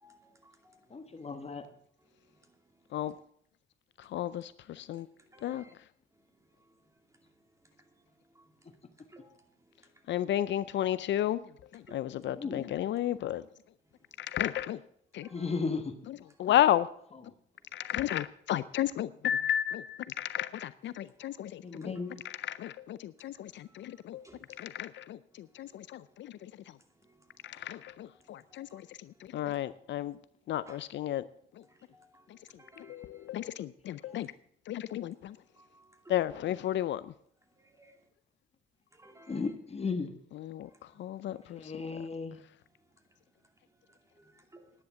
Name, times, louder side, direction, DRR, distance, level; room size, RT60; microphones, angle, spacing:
voice 1, 0.0-0.8 1.2-1.8 2.2-2.5 4.1-4.2 5.3-5.7 6.7-6.8 7.6-7.7 8.3-8.5 9.1-9.4 9.9-10.0 11.9-12.6 15.2-15.7 16.2-16.5 17.8-18.0 21.2-21.3 21.7-22.4 23.6-24.6 25.6-25.9 27.0-27.7 28.5-28.8 29.3-29.4 30.7-30.8 31.6-33.6 34.1-34.3 34.9-35.2 35.5-36.3 37.8-37.9 38.9-39.5 40.7-41.0 41.3-41.9 43.9-44.7, right 1 dB, 15° right, 2.5 m, -60 dB
voice 2, 0.9-1.6 12.3-12.7 15.3-15.9 21.6-22.2 39.3-40.1 41.6-42.4, left 4 dB, 30° left, 1.2 m, -35 dB
voice 3, 10.1-11.4 11.9-13.4 14.3-14.8 16.4-16.9 17.8-21.5 21.8-21.9 22.6-22.7 23.2-23.3 24.1-24.2 24.8-24.9 25.6-25.7 27.7-27.8 28.6-28.7 29.3-30.1 30.5-31.2 33.3-34.3 34.7-35.1 36.1-37.0 40.4-40.6 41.0-41.3, left 12 dB, 70° left, 0.5 m, -31 dB
10.5 x 9.8 x 7.0 m
cardioid pair, 90°, 20 cm